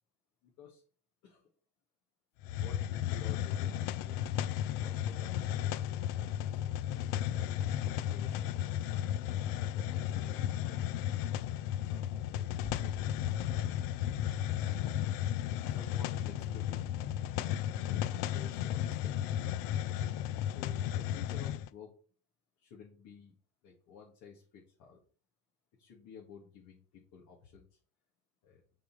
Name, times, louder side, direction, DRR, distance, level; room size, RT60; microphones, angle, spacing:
voice 1, 0.4-0.8 1.2-1.5 2.6-4.3 4.8-8.7 9.4-10.8 11.8-13.2 14.6-14.8 15.4-16.8 17.8-19.5 20.3-22.0 22.6-23.3 23.6-25.0 25.8-27.8 28.4-28.6, left 6 dB, 55° left, -1 dB, 1.8 m, -54 dB
Hiss, 2.4-21.7, left 11 dB, 70° left, 0.5 m, -34 dB
sound 1, 12.6-19.5, left 2 dB, ahead, 1.2 m, -50 dB
6.6 x 3.9 x 4.7 m, 0.40 s
cardioid pair, 145°, 35 cm